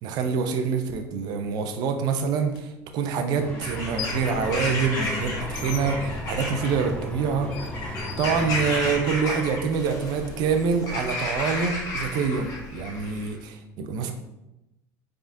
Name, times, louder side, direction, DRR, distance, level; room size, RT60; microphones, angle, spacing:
voice 1, 0.0-7.6 8.2-14.1, right 5 dB, 55° right, 6 dB, 0.6 m, -26 dB
sound 1, 2.5-2.6 3.7-4.3 4.7-9.1, left 7 dB, 65° left, 0.5 m, -41 dB
sound 2, 3.3-9.0, left 2 dB, 15° left, 1.2 m, -35 dB
Bird vocalization bird call bird song / Crow, 3.5-13.3, left 1 dB, 45° left, 1.3 m, -33 dB
4.8 x 3.7 x 2.6 m, 0.92 s
supercardioid pair, 110°, 8 cm